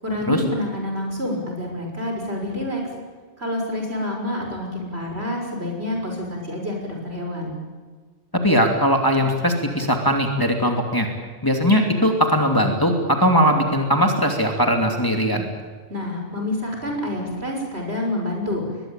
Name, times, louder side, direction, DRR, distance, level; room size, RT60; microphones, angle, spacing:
voice 1, 0.0-2.8 3.4-7.5 15.9-18.6, left 1 dB, 55° right, 1 dB, 6.7 m, -27 dB
voice 2, 8.4-11.1 11.4-15.5, equal, 15° left, 2 dB, 2.7 m, -19 dB
23.0 x 21.0 x 9.0 m, 1.5 s
omnidirectional pair, 1.3 m